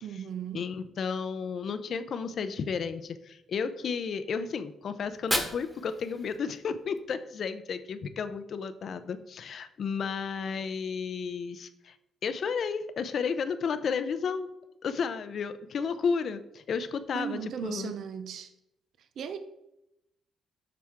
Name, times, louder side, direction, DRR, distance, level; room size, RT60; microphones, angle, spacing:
voice 1, 0.0-0.7 17.1-18.5 19.2-19.4, right 8 dB, 65° right, 9 dB, 0.5 m, -36 dB
voice 2, 0.5-12.0 12.2-14.5 14.8-17.9, left 6 dB, 55° left, 11 dB, 0.6 m, -32 dB
Fire, 5.0-7.0, equal, ahead, 1.3 m, -35 dB
7.4 x 6.0 x 3.6 m, 0.87 s
cardioid pair, 90°, 0 cm